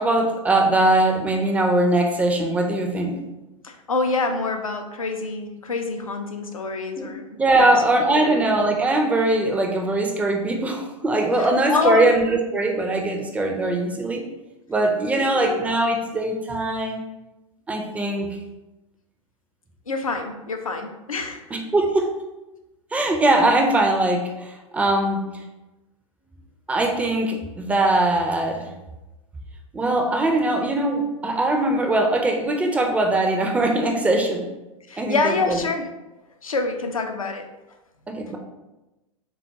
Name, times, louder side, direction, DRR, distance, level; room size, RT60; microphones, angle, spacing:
voice 1, 0.0-3.2 7.0-7.1 7.4-14.2 14.7-17.0 17.7-18.3 21.5-22.2 22.9-25.3 26.7-28.7 29.7-34.5 35.0-35.6 38.1-38.4, right 2 dB, 10° right, 2 dB, 0.3 m, -21 dB
voice 2, 3.6-7.7 8.1-8.4 11.4-12.1 15.2-15.6 19.9-21.4 34.9-35.9 36.4-37.5, left 3 dB, 80° left, 5 dB, 0.4 m, -26 dB
3.5 x 2.3 x 2.8 m, 1.0 s
figure-of-eight pair, 90°, 17 cm